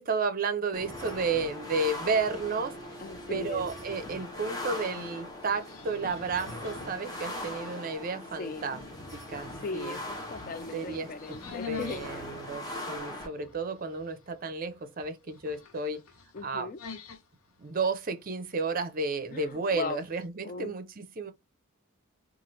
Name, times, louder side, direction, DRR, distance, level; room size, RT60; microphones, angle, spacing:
voice 1, 0.0-2.8 3.3-8.8 9.1-10.0 10.7-11.4 11.7-16.0 16.4-16.7 17.6-21.3, right 4 dB, 40° right, 0.5 m, -32 dB
sound 1, 0.7-13.3, left 1 dB, 20° left, 0.8 m, -40 dB
sound 2, 2.6-20.3, left 4 dB, 85° left, 0.7 m, -50 dB
voice 2, 3.0-3.7 8.4-8.7 9.6-12.3 16.3-16.8 19.3-20.0 20.4-20.7, left 4 dB, 40° left, 0.4 m, -38 dB
2.9 x 2.4 x 3.0 m
head